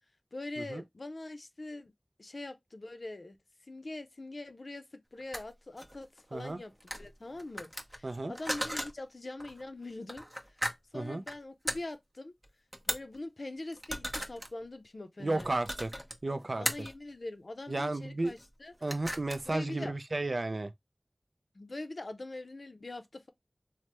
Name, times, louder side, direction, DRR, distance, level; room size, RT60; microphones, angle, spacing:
voice 1, 0.3-1.9 2.2-3.4 3.7-10.6 10.9-12.3 12.9-15.5 16.6-18.7 19.4-19.9 21.5-23.3, left 2 dB, 70° left, 0.4 m, -43 dB
sound 1, 5.2-5.4 5.8-6.5 6.8-7.1 7.4-8.9 9.4-9.6 10.1-10.7 11.1-11.4 11.7-11.8 12.4-12.5 12.7-13.2 13.7-14.5 15.4-16.1 16.7-16.9 18.3-18.5 18.7-19.5, equal, 20° right, 0.6 m, -36 dB
voice 2, 8.0-8.3 10.9-11.2 15.2-15.9 16.2-16.9 17.7-18.3 18.8-20.7, right 2 dB, 65° right, 0.3 m, -33 dB
3.2 x 2.1 x 2.8 m
wide cardioid pair, 40°, 0 cm